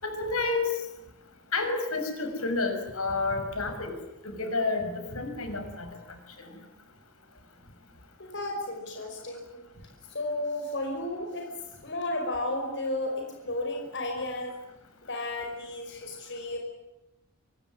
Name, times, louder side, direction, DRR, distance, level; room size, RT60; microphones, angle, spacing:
voice 1, 0.0-0.8 1.5-3.9 4.2-5.9 6.4-6.5, left 3 dB, 75° left, 7 dB, 6.3 m, -30 dB
voice 2, 8.2-9.6 10.1-11.5 11.8-14.5 15.1-16.6, left 1 dB, 55° left, 2 dB, 5.3 m, -33 dB
26.0 x 23.5 x 9.7 m, 0.95 s
head